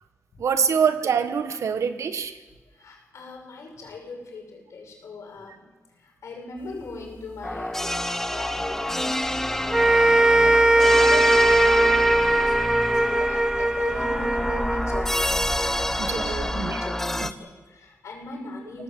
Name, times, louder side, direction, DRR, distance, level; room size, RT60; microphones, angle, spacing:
voice 1, 0.4-2.4 16.0-16.8 17.2-17.3, right 7 dB, 90° right, 9 dB, 1.6 m, -25 dB
voice 2, 2.8-5.6 6.0-8.0 8.3-9.1 9.6-15.5 15.8-18.8, left 3 dB, 85° left, 1 dB, 6.2 m, -39 dB
sound 1, 6.6-16.5, left 1 dB, 50° left, 5.9 m, -40 dB
sound 2, 7.4-17.3, left 1 dB, 5° left, 1.0 m, -27 dB
sound 3, 9.7-16.1, right 2 dB, 15° right, 0.6 m, -20 dB
23.0 x 18.5 x 7.8 m, 1.2 s
wide cardioid pair, 130°, 5 cm